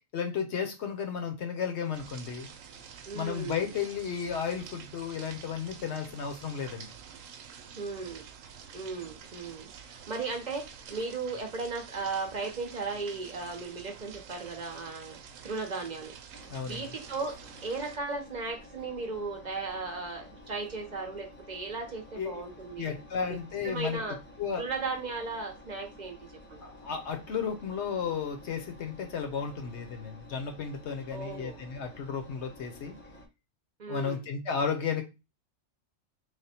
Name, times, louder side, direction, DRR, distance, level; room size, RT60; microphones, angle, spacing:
voice 1, 0.1-2.5 3.1-6.9 16.5-16.9 22.2-22.4 22.8-24.0 24.4-24.6 26.6-33.0 33.9-35.0, left 6 dB, 60° left, 6 dB, 0.9 m, -33 dB
sound 1, 1.9-18.0, right 7 dB, 80° right, 1.0 m, -48 dB
voice 2, 3.1-3.7 7.8-8.2 8.7-15.2 15.4-17.4 17.6-22.9 23.2-23.4 23.6-24.2 24.6-26.2 26.5-26.6 31.1-31.6 33.8-34.3, right 4 dB, 40° right, 3 dB, 0.7 m, -36 dB
Engine, 16.3-33.3, left 1 dB, 10° left, 0.6 m, -52 dB
3.3 x 2.1 x 4.2 m, 0.26 s
omnidirectional pair, 1.4 m